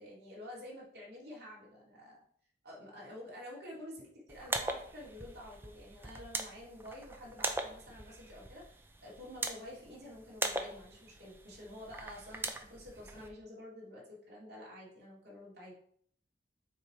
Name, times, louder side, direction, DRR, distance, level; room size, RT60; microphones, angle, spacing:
voice 1, 0.0-2.2 2.6-15.7, left 1 dB, 60° right, -5 dB, 2.7 m, -49 dB
sound 1, 4.3-13.3, right 2 dB, 10° right, 0.5 m, -41 dB
7.1 x 3.2 x 4.9 m, 0.63 s
head